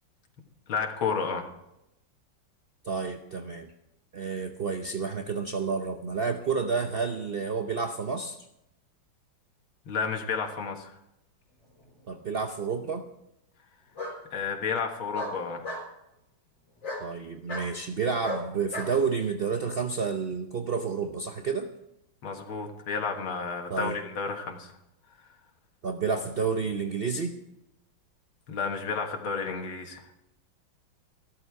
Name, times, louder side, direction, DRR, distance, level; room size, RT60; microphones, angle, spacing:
voice 1, 0.7-1.5 9.9-10.9 14.3-15.6 22.2-24.7 28.5-30.1, left 5 dB, 85° left, 3 dB, 2.5 m, -31 dB
voice 2, 2.8-3.7 4.1-8.4 12.1-13.0 17.0-21.7 23.7-24.0 25.8-27.3, right 5 dB, 60° right, 5 dB, 0.5 m, -30 dB
Bark, 11.8-12.4 14.0-14.2 15.1-15.9 16.8-17.1 17.5-17.7 18.2-18.9, left 1 dB, 65° left, 4.7 m, -35 dB
15.0 x 13.0 x 4.8 m, 0.84 s
omnidirectional pair, 2.2 m